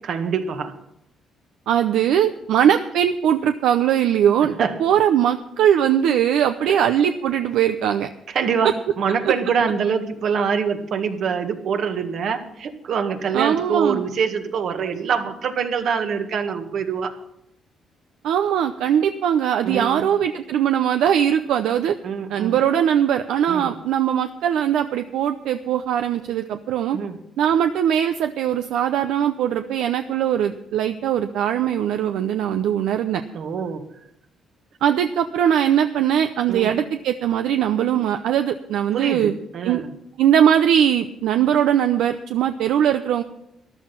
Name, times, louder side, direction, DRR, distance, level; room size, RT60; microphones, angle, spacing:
voice 1, 0.0-0.7 4.6-4.7 6.6-6.9 8.3-8.7 9.0-17.1 19.6-20.1 22.0-22.5 23.5-23.7 26.9-27.2 33.3-33.8 36.5-36.8 38.9-39.9, right 6 dB, 65° right, 6 dB, 1.7 m, -25 dB
voice 2, 1.7-8.1 13.3-14.0 18.2-22.0 22.3-27.0 27.4-33.2 34.8-39.3 39.6-39.8 40.2-43.2, right 9 dB, 85° right, 8 dB, 0.6 m, -20 dB
13.5 x 11.5 x 5.9 m, 0.81 s
cardioid pair, 90°, 0 cm